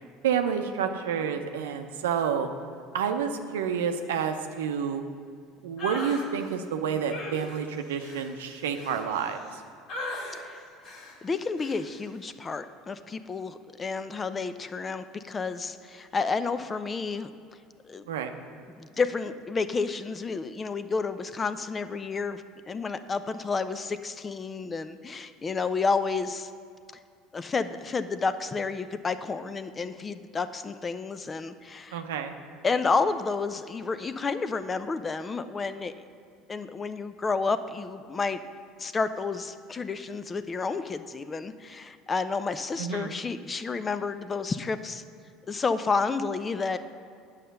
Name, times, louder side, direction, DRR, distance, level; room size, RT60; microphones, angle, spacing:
voice 1, 0.2-2.5 2.9-5.0 5.6-9.6 18.1-18.3 31.9-32.3 42.8-43.1, right 7 dB, 80° right, 7 dB, 0.6 m, -29 dB
sound 1, 5.8-6.3 7.1-9.5 9.9-10.4 10.8-11.2 11.6-11.8, left 2 dB, 60° left, 2.0 m, -38 dB
voice 2, 11.2-17.3 17.8-18.0 18.7-26.5 27.3-32.0 32.6-35.9 36.5-38.4 38.8-45.0 45.5-46.8, left 4 dB, 30° left, 12 dB, 0.5 m, -30 dB
9.1 x 5.7 x 6.6 m, 2.2 s
hypercardioid pair, 75°, 0 cm